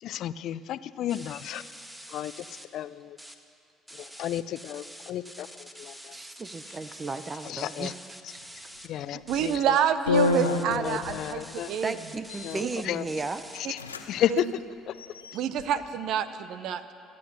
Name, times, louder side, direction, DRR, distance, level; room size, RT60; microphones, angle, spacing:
voice 1, 0.0-1.6 2.1-2.5 2.7-3.2 3.9-6.2 6.7-6.8 7.4-7.9 8.2-8.3 8.8-9.8 10.6-11.7 12.4-13.1 13.6-13.8 14.1-14.5 14.9-15.0 15.5-15.7, left 12 dB, 60° left, 16 dB, 0.5 m, -33 dB
sound 1, 1.1-2.7 3.0-3.4 3.7-8.9 9.3-9.6 10.1-13.6, equal, 10° right, 1.6 m, -46 dB
voice 2, 6.1-7.9 8.3-8.4 11.8-13.4, right 3 dB, 30° right, 12 dB, 0.7 m, -35 dB
sound 2, 9.2-9.5 10.1-11.2 12.2-12.6 13.2-13.3 13.5-14.0 14.3-14.4 14.9-15.6, left 4 dB, 90° left, 0.8 m, -28 dB
voice 3, 9.3-11.9 12.6-12.7 14.3-14.5 15.3-16.9, right 9 dB, 60° right, 13 dB, 0.8 m, -28 dB
25.5 x 8.6 x 6.5 m, 2.7 s
figure-of-eight pair, 50°, 0 cm